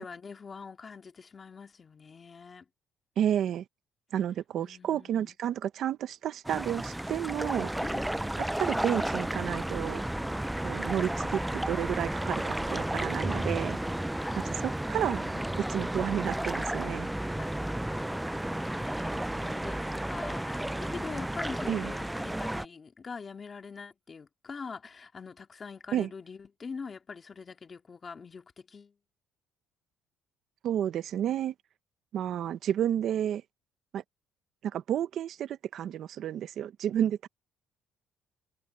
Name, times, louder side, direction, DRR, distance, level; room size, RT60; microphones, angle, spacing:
voice 1, 0.0-2.7 4.6-5.3 7.8-8.2 14.2-14.7 17.4-29.0, left 5 dB, 30° left, 2.2 m, -44 dB
voice 2, 3.2-3.6 4.1-7.7 8.4-10.0 10.6-13.8 14.4-17.1 21.7-21.9 25.9-26.1 30.6-31.5 32.1-33.4 33.9-34.0 34.6-37.3, right 10 dB, 55° right, 0.9 m, -31 dB
sound 1, 6.4-22.7, right 1 dB, 5° right, 0.3 m, -32 dB
cardioid pair, 125°, 0 cm